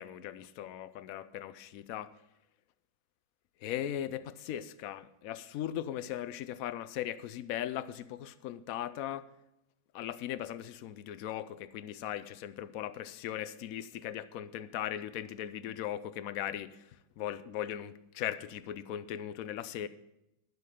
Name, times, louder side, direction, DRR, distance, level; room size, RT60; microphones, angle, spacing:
voice 1, 0.0-2.1 3.6-9.3 9.9-19.9, left 11 dB, 75° left, 14 dB, 0.8 m, -38 dB
11.5 x 8.3 x 4.9 m, 0.87 s
omnidirectional pair, 2.0 m